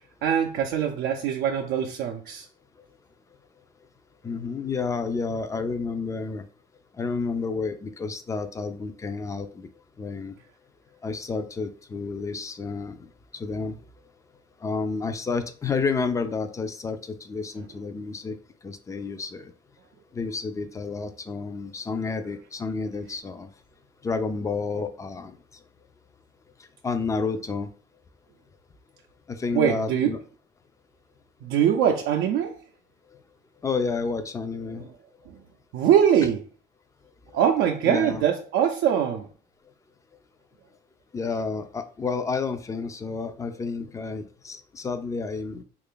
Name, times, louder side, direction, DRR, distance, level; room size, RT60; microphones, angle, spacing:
voice 1, 0.2-2.5 29.5-30.1 31.4-32.6 35.3-35.4 35.7-36.4 37.3-39.3, right 9 dB, 80° right, 1 dB, 0.4 m, -22 dB
voice 2, 4.2-6.4 7.0-9.7 10.0-10.4 11.0-13.8 14.6-18.4 18.6-19.5 20.1-23.5 24.0-25.3 26.8-27.7 29.3-30.2 33.6-34.9 37.9-38.2 41.1-45.6, left 4 dB, 20° left, 9 dB, 0.4 m, -30 dB
3.2 x 2.5 x 3.6 m, 0.41 s
cardioid pair, 110°, 17 cm